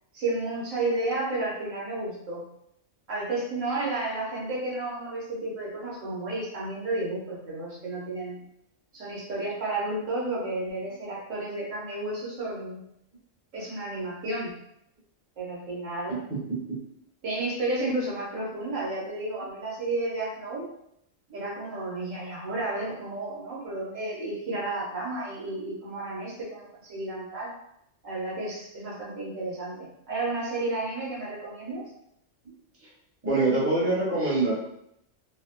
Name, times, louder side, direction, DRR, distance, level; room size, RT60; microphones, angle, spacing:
voice 1, 0.1-2.4 3.1-8.4 8.9-12.8 13.5-14.5 15.4-16.2 17.2-20.6 21.3-27.5 28.0-31.8, right 2 dB, 80° right, -5 dB, 1.4 m, -32 dB
voice 2, 16.3-16.8 33.2-34.5, right 2 dB, 10° right, -8 dB, 1.1 m, -25 dB
3.9 x 2.1 x 2.5 m, 0.77 s
omnidirectional pair, 1.3 m